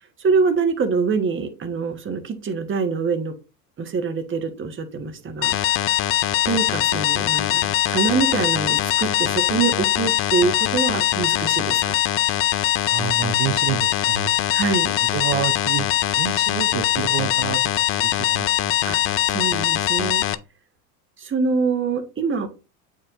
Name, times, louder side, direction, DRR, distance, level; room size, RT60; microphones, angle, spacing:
voice 1, 0.2-3.3 3.8-5.9 6.5-12.0 14.5-14.9 18.8-19.0 19.3-20.2 21.2-22.5, right 5 dB, 25° right, 1.3 m, -24 dB
sound 1, 5.4-20.3, left 12 dB, 30° left, 0.4 m, -22 dB
voice 2, 12.9-14.6 15.1-17.7 18.0-19.1, right 9 dB, 45° right, 0.9 m, -29 dB
8.3 x 4.7 x 2.6 m
hypercardioid pair, 95°, 48 cm